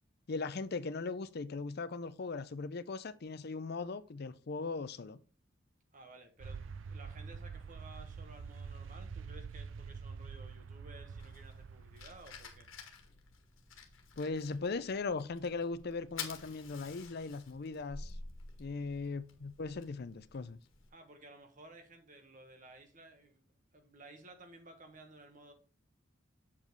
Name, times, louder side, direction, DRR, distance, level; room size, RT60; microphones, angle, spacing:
voice 1, 0.3-5.2 14.2-18.2 18.6-20.6, left 4 dB, 55° left, 0.5 m, -39 dB
voice 2, 5.9-6.6 6.9-12.7 20.9-23.4 23.7-25.5, right 2 dB, 40° right, 1.4 m, -55 dB
sound 1, 6.4-12.9, right 5 dB, 70° right, 0.4 m, -46 dB
Fire, 11.2-20.9, left 5 dB, 80° left, 1.5 m, -50 dB
7.1 x 5.1 x 3.9 m
head